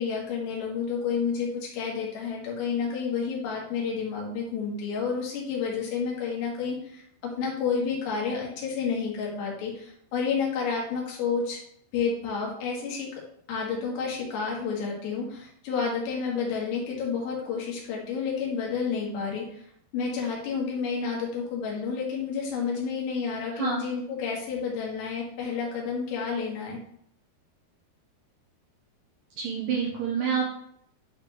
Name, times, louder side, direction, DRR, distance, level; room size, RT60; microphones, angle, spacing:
voice 1, 0.0-11.6 11.9-13.1 13.5-19.6 19.9-26.8, left 5 dB, 75° left, -2 dB, 3.8 m, -30 dB
voice 2, 29.4-30.5, right 6 dB, 75° right, -1 dB, 2.1 m, -27 dB
10.5 x 4.4 x 3.0 m, 0.70 s
omnidirectional pair, 5.0 m